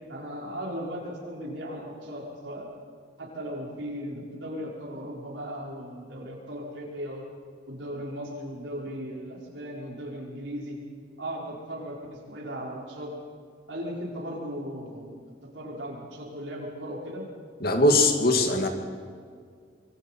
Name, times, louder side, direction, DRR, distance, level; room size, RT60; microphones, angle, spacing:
voice 1, 0.1-2.7 3.2-7.2 7.7-10.8 11.2-13.1 13.7-15.1 15.5-17.2, equal, 85° right, -3 dB, 5.6 m, -37 dB
voice 2, 17.6-18.7, left 2 dB, 55° left, 4 dB, 2.4 m, -21 dB
25.5 x 24.0 x 4.6 m, 2.1 s
head